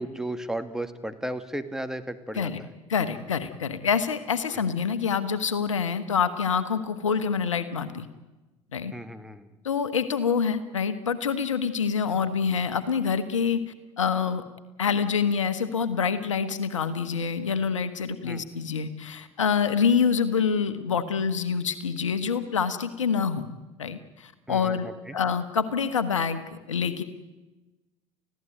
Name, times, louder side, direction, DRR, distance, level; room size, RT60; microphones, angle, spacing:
voice 1, 0.0-2.7 4.5-4.7 8.9-9.5 18.2-18.5 24.5-25.2, right 1 dB, 5° right, 9 dB, 2.2 m, -35 dB
voice 2, 2.9-8.1 8.7-8.9 9.6-13.6 14.0-14.4 14.8-23.5 23.8-27.0, left 6 dB, 85° left, 12 dB, 1.3 m, -26 dB
29.5 x 16.0 x 9.2 m, 1.1 s
hypercardioid pair, 60°, 16 cm